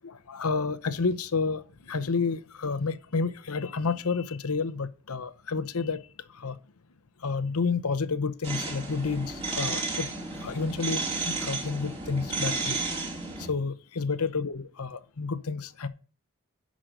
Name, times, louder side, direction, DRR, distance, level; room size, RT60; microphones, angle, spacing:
voice 1, 0.0-6.0 6.3-6.6 7.2-10.1 10.4-12.8 13.4-15.9, left 4 dB, 80° left, 0.8 m, -30 dB
sound 1, 8.4-13.5, right 3 dB, 25° right, 2.9 m, -32 dB
10.5 x 6.3 x 5.2 m
head